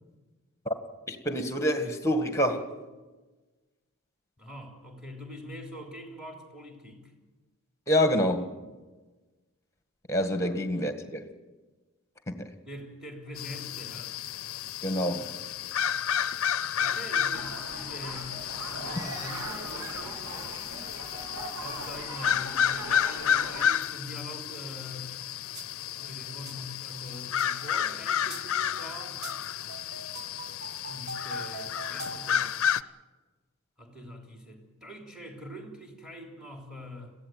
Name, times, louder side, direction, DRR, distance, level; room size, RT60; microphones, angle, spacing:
voice 1, 1.1-2.7 7.9-8.5 10.1-11.3 12.3-12.5 14.8-15.3, equal, 15° left, 9 dB, 1.8 m, -27 dB
voice 2, 4.4-7.0 12.7-14.2 16.7-18.3 18.7-20.6 21.6-25.1 25.8-29.2 30.8-32.5 33.8-37.1, left 1 dB, 5° right, 3 dB, 3.6 m, -44 dB
sound 1, 13.4-32.8, left 9 dB, 65° left, 0.6 m, -31 dB
sound 2, 17.3-23.6, right 2 dB, 80° right, 3.3 m, -40 dB
sound 3, 25.5-25.7 26.0-32.4, right 1 dB, 50° right, 2.0 m, -43 dB
22.5 x 15.5 x 9.3 m, 1.3 s
head